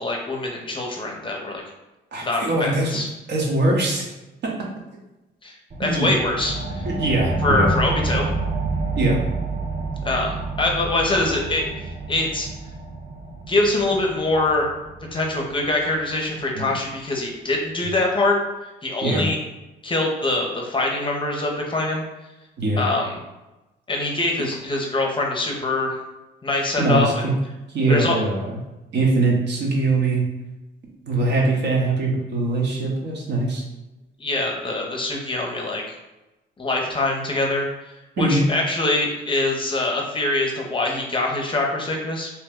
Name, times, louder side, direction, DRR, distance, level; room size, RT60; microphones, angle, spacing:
voice 1, 0.0-1.6 2.2-3.1 5.4-5.5 5.8-6.8 7.4-8.3 10.0-11.7 12.1-12.5 13.5-14.7 15.1-18.4 18.8-19.4 19.8-22.0 22.8-23.2 23.9-26.0 26.4-27.3 27.9-28.2 34.2-36.0 36.6-37.7 38.2-42.3, left 2 dB, 25° left, 0 dB, 0.6 m, -24 dB
voice 2, 2.1-2.9 3.3-4.1 4.4-4.6 5.8-6.1 6.8-7.7 9.0-9.2 16.5-16.7 19.0-19.3 22.6-22.8 26.8-27.3 27.7-28.6 28.9-30.2 31.0-33.6 38.2-38.5, right 2 dB, 60° right, -2 dB, 0.8 m, -22 dB
sound 1, 5.7-16.8, right 3 dB, 35° right, 0.5 m, -29 dB
2.8 x 2.1 x 3.5 m, 1.0 s
cardioid pair, 90°, 20 cm